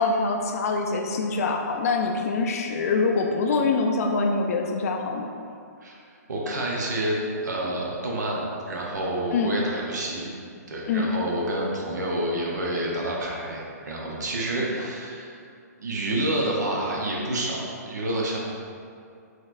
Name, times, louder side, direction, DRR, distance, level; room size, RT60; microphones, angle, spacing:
voice 1, 0.0-5.3 9.3-9.5 10.9-11.1 14.6-14.7, left 4 dB, 60° left, 2 dB, 0.4 m, -24 dB
voice 2, 6.3-7.2 7.4-10.3 10.7-15.3 15.8-18.4, right 1 dB, 80° right, -3 dB, 0.7 m, -28 dB
4.1 x 3.0 x 2.5 m, 2.4 s
hypercardioid pair, 150°, 9 cm